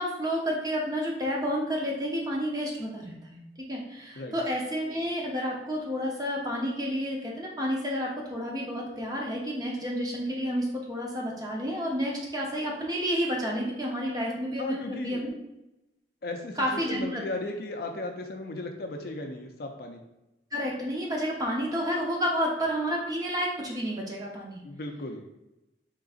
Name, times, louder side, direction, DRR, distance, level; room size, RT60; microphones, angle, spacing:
voice 1, 0.0-3.4 3.7-15.3 16.6-17.2 20.5-24.6, equal, 20° right, -2 dB, 0.7 m, -30 dB
voice 2, 14.6-15.2 16.2-20.0 24.6-25.3, left 2 dB, 55° left, 4 dB, 0.4 m, -36 dB
3.8 x 3.7 x 2.4 m, 0.95 s
head